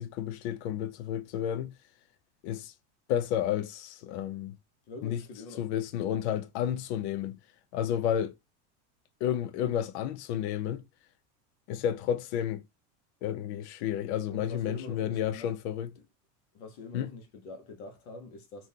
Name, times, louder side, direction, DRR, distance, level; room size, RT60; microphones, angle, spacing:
voice 1, 0.0-1.7 2.4-2.7 3.1-4.6 5.0-5.2 5.6-7.4 7.7-8.3 9.2-10.8 11.7-12.6 13.2-16.0 16.9-17.1, left 10 dB, 65° left, 0.6 m, -31 dB
voice 2, 4.9-5.6 14.3-15.5 16.5-18.7, left 3 dB, 40° left, 0.9 m, -45 dB
3.6 x 2.6 x 2.8 m
supercardioid pair, 175°, 36 cm